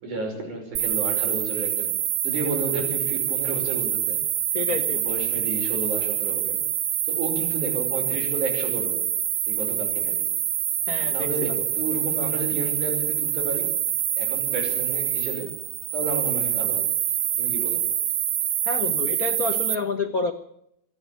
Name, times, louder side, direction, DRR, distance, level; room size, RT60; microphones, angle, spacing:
voice 1, 0.0-1.9 2.2-4.2 4.9-6.6 7.1-9.0 9.4-10.2 11.1-13.7 14.2-15.5 15.9-16.9 17.4-17.9, right 3 dB, 90° right, 2 dB, 7.2 m, -32 dB
sound 1, 0.8-19.8, right 10 dB, 65° right, 1.4 m, -26 dB
voice 2, 4.5-5.0 10.9-11.5 18.7-20.3, left 4 dB, 45° left, 7 dB, 1.2 m, -29 dB
27.0 x 11.0 x 9.0 m, 0.75 s
omnidirectional pair, 3.4 m